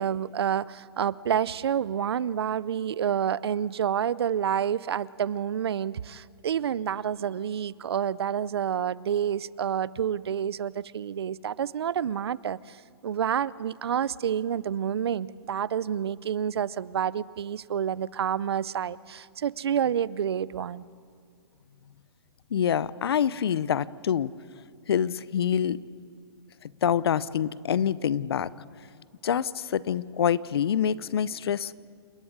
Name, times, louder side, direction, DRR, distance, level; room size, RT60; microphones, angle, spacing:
voice 1, 0.0-12.8 13.0-20.8, right 9 dB, 75° right, 0.6 m, -28 dB
voice 2, 22.5-24.3 24.9-25.8 26.8-28.5 29.2-31.7, left 8 dB, 70° left, 0.7 m, -26 dB
28.5 x 11.0 x 9.5 m
hypercardioid pair, 155°, 13 cm